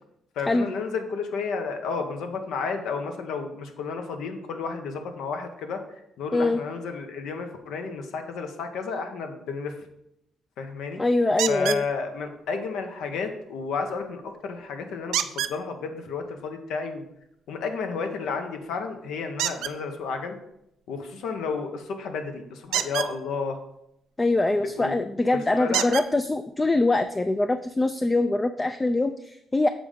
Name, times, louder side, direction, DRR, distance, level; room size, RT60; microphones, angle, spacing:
voice 1, 0.4-5.8 6.2-9.8 10.6-11.0 11.5-17.0 17.5-20.4 20.9-23.6 24.5-25.0 25.3-25.9, left 5 dB, 80° left, 5 dB, 0.9 m, -32 dB
voice 2, 11.0-11.8 24.2-29.7, left 2 dB, 20° left, 10 dB, 0.3 m, -23 dB
sound 1, 11.4-11.8 15.1-15.6 19.4-19.7 22.6-23.1 24.8-24.9 25.7-26.1 27.1-27.2 27.7-27.8, right 11 dB, 85° right, 0.4 m, -27 dB
7.2 x 3.7 x 5.0 m, 0.79 s
cardioid pair, 90°, 0 cm